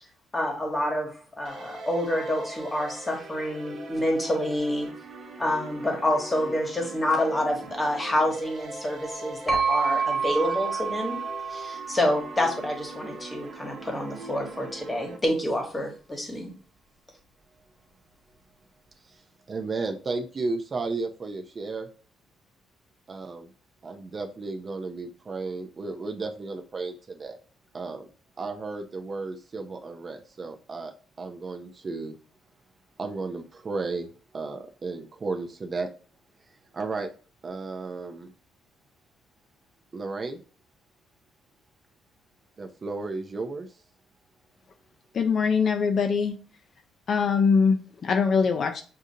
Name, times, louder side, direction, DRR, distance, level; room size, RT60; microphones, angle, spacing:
voice 1, 0.3-4.9 5.4-11.2 11.5-16.5, left 1 dB, 15° left, 2 dB, 1.1 m, -28 dB
sound 1, 1.4-15.2, right 2 dB, 50° right, 0.9 m, -42 dB
sound 2, 9.5-13.2, right 5 dB, ahead, 1.4 m, -29 dB
voice 2, 19.0-21.9 23.1-23.5 23.8-27.4 27.7-28.1 28.4-30.9 31.2-32.1 33.0-35.9 36.7-37.1 37.4-38.3 39.9-40.4 42.6-43.8, right 3 dB, 30° right, 4 dB, 0.4 m, -34 dB
voice 3, 45.1-46.4 47.1-48.8, left 5 dB, 45° left, 5 dB, 0.4 m, -22 dB
6.3 x 2.5 x 2.7 m, 0.39 s
cardioid pair, 140°, 0 cm